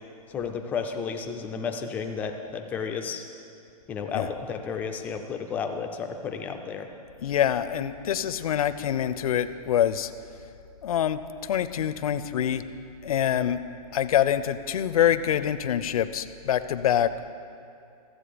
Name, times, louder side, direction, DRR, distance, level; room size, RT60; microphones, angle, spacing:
voice 1, 0.3-3.2 3.9-6.9, left 6 dB, 10° left, 5 dB, 0.3 m, -32 dB
voice 2, 7.2-10.1 10.8-11.2 11.5-12.6 13.0-13.6 13.9-17.1, left 10 dB, 65° left, 12 dB, 0.6 m, -25 dB
14.0 x 7.5 x 5.0 m, 2.5 s
hypercardioid pair, 155°, 20 cm